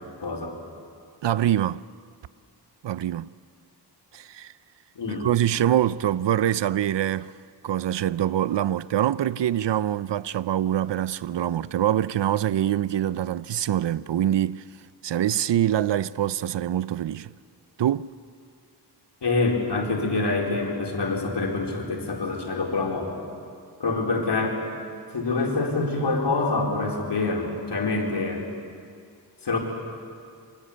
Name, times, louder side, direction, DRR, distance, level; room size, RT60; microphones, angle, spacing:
voice 1, 0.2-0.5 4.9-5.3 19.2-23.1 23.8-24.6 25.1-28.4 29.4-29.6, left 3 dB, 75° left, 4.6 m, -26 dB
voice 2, 1.2-1.8 2.8-3.3 4.1-4.5 5.2-7.3 7.6-14.6 15.0-17.3 17.8-18.2, right 11 dB, 90° right, 0.6 m, -24 dB
27.0 x 24.5 x 8.7 m
wide cardioid pair, 110°, 41 cm